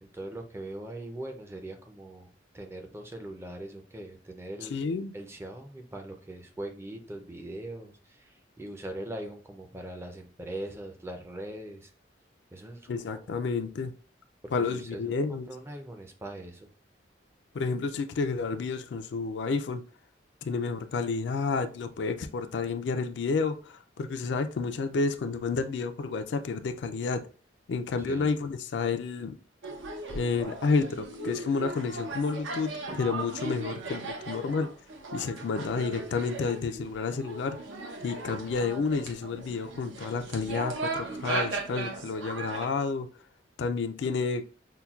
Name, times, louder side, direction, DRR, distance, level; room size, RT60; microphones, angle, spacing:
voice 1, 0.0-4.7 5.1-11.9 12.5-13.4 14.4-16.7 28.0-28.4, right 1 dB, 15° right, 0.4 m, -41 dB
voice 2, 4.7-5.1 12.9-13.9 14.5-15.5 17.5-19.8 20.4-27.2 27.7-29.3 30.1-34.7 35.1-37.6 38.0-43.1 43.6-44.4, left 4 dB, 65° left, 0.4 m, -30 dB
sound 1, 29.6-42.7, right 3 dB, 80° right, 0.7 m, -37 dB
5.6 x 2.2 x 2.3 m
head